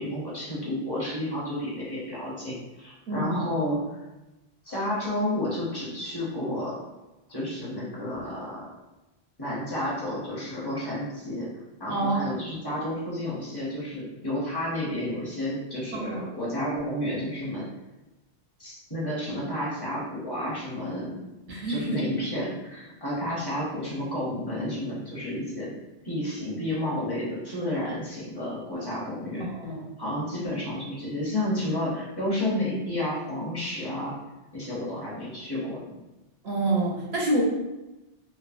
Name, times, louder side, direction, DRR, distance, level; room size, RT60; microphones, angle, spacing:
voice 1, 0.0-3.8 4.6-6.8 7.3-8.7 9.4-11.5 11.8-17.7 18.6-21.2 21.7-25.7 26.0-29.4 30.0-34.1 34.5-35.8, left 1 dB, 25° left, -7 dB, 0.7 m, -31 dB
voice 2, 3.1-3.4 11.9-12.4 15.9-16.2 21.5-22.0 29.4-29.8 36.4-37.4, right 2 dB, 70° right, -2 dB, 0.8 m, -27 dB
3.1 x 2.0 x 2.4 m, 1.0 s
omnidirectional pair, 1.1 m